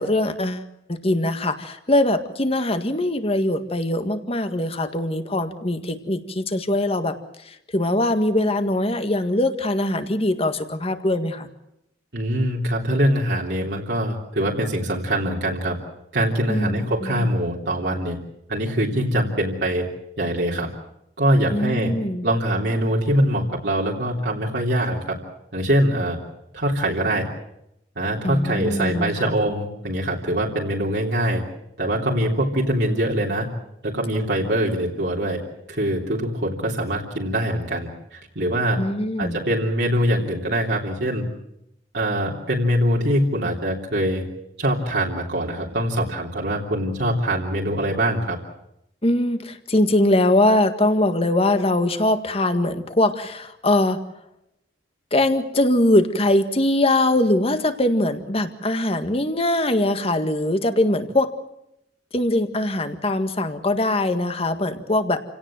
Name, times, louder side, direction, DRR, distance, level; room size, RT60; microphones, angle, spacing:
voice 1, 0.0-7.2 7.5-11.5 16.5-17.3 21.5-22.3 28.2-29.3 38.8-39.4 49.0-54.1 55.1-61.3 62.1-65.2, left 1 dB, 35° left, 9 dB, 1.8 m, -22 dB
voice 2, 12.1-15.8 16.1-18.2 18.5-19.9 20.2-20.7 21.2-21.9 22.2-25.2 25.5-26.2 26.5-27.3 27.9-31.4 31.8-33.5 33.8-35.4 35.7-38.8 39.2-41.2 41.9-44.2 44.6-48.4, right 1 dB, 70° right, -3 dB, 3.2 m, -23 dB
28.5 x 17.5 x 7.6 m, 0.82 s
head